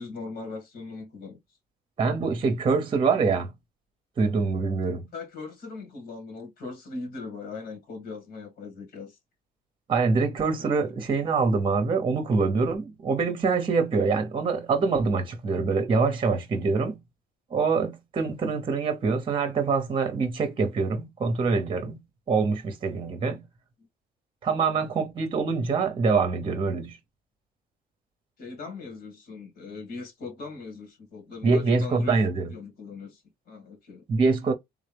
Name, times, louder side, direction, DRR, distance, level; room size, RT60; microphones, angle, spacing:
voice 1, 0.0-1.4 5.1-9.2 10.6-10.8 18.2-18.3 23.2-23.4 28.4-32.2 32.5-34.1, left 3 dB, 65° left, 2.1 m, -40 dB
voice 2, 2.0-3.5 4.2-5.0 9.9-16.9 17.5-22.0 22.3-23.4 24.4-27.0 31.4-32.5 34.1-34.5, right 4 dB, 30° right, 0.8 m, -25 dB
3.6 x 2.8 x 3.3 m
cardioid pair, 110°, 17 cm